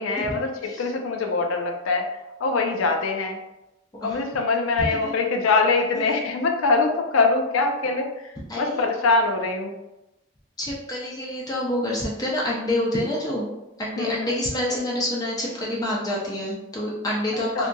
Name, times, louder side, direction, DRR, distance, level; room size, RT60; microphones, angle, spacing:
voice 1, 0.0-2.1 2.4-3.4 4.0-8.1 8.6-9.7 14.0-14.3 14.7-14.8 17.6-17.7, left 3 dB, 85° left, 4 dB, 0.4 m, -23 dB
voice 2, 4.8-5.1 5.9-6.2 8.5-8.9 10.6-13.5 13.8-17.7, left 1 dB, 20° left, -4 dB, 0.5 m, -27 dB
2.7 x 2.5 x 2.2 m, 0.95 s
head